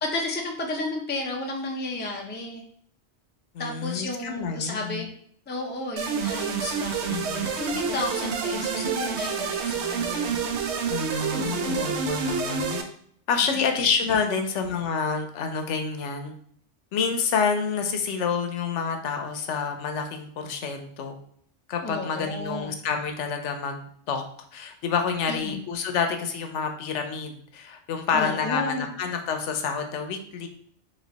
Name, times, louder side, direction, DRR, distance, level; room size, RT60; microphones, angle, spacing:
voice 1, 0.0-2.6 3.6-5.1 5.5-7.0 7.4-10.4 11.4-11.9 13.4-13.6 14.2-14.4 21.8-22.7 25.3-25.6 28.1-28.9, left 2 dB, 15° left, 1 dB, 0.4 m, -32 dB
voice 2, 3.5-5.0 7.1-7.5 10.9-12.8 13.3-16.3 16.9-21.2 21.7-24.2 24.5-30.5, left 5 dB, 85° left, 6 dB, 1.0 m, -28 dB
sound 1, 6.0-12.8, right 6 dB, 75° right, 0.9 m, -28 dB
3.3 x 3.2 x 3.9 m, 0.63 s
omnidirectional pair, 1.2 m